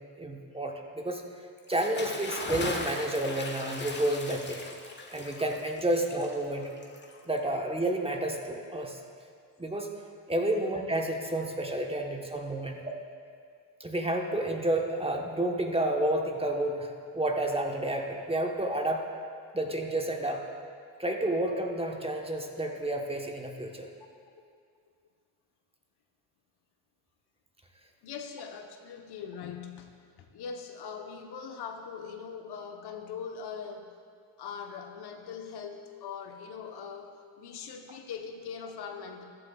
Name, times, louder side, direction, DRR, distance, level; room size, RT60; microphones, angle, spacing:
voice 1, 0.2-1.2 1.7-4.6 5.1-6.7 7.3-9.0 9.6-9.9 10.3-12.8 13.8-19.0 19.5-20.4 21.0-23.9, right 1 dB, 10° right, 2 dB, 1.1 m, -30 dB
Bathtub (filling or washing) / Splash splatter, 1.6-7.5, left 3 dB, 20° left, 1.5 m, -39 dB
voice 2, 28.0-29.9 30.3-33.9 34.4-39.2, left 6 dB, 50° left, 4 dB, 1.1 m, -41 dB
15.0 x 11.5 x 2.3 m, 2.2 s
hypercardioid pair, 70°, 49 cm